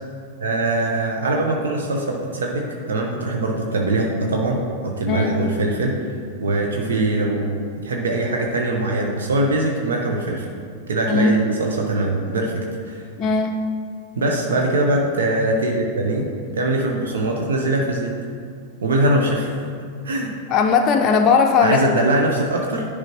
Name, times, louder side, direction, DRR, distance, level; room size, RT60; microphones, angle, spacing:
voice 1, 0.4-5.9 6.4-7.5 7.8-10.5 10.9-12.6 12.9-13.0 14.2-18.1 18.8-19.5 20.0-20.3 21.6-22.9, right 2 dB, 70° right, 0 dB, 0.8 m, -22 dB
voice 2, 11.1-11.4 13.2-13.5 20.5-21.9, left 5 dB, 35° left, 3 dB, 0.5 m, -18 dB
10.5 x 4.8 x 3.0 m, 2.3 s
figure-of-eight pair, 95°, 0 cm